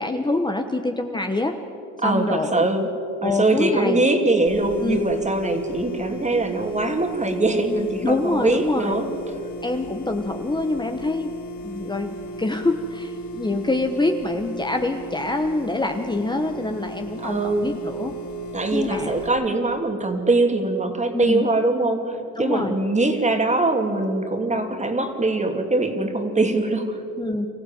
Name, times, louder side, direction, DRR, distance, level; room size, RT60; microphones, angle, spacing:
voice 1, 0.0-1.6 2.0-2.7 3.2-4.1 4.8-5.0 8.0-9.0 9.6-11.3 11.6-18.1 18.7-19.1 21.1-21.4 22.4-22.7 27.2-27.5, left 2 dB, 15° left, 5 dB, 1.1 m, -25 dB
voice 2, 2.0-2.9 3.2-9.1 17.2-17.7 18.5-27.0, right 2 dB, 25° right, 5 dB, 2.5 m, -22 dB
sound 1, 4.5-19.3, equal, 70° left, 2.0 m, -36 dB
24.5 x 15.0 x 8.9 m, 2.8 s
cardioid pair, 90°, 30 cm